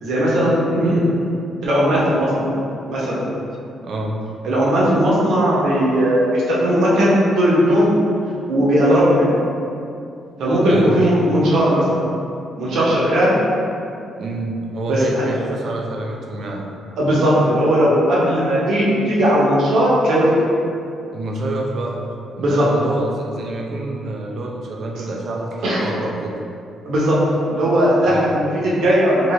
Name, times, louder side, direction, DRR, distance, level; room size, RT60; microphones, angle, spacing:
voice 1, 0.0-1.0 1.6-2.5 2.9-3.2 4.4-8.0 8.5-9.3 10.4-12.0 12.6-13.4 14.9-15.2 17.0-20.3 22.4-22.7 25.6-25.8 26.8-27.2 27.5-29.3, equal, 75° right, -7 dB, 0.9 m, -17 dB
voice 2, 3.8-4.2 10.7-11.1 14.2-16.6 21.1-22.0 22.3-26.4 28.0-28.3, right 2 dB, 55° right, 0 dB, 0.4 m, -27 dB
2.8 x 2.5 x 3.1 m, 2.6 s
cardioid pair, 90°, 0 cm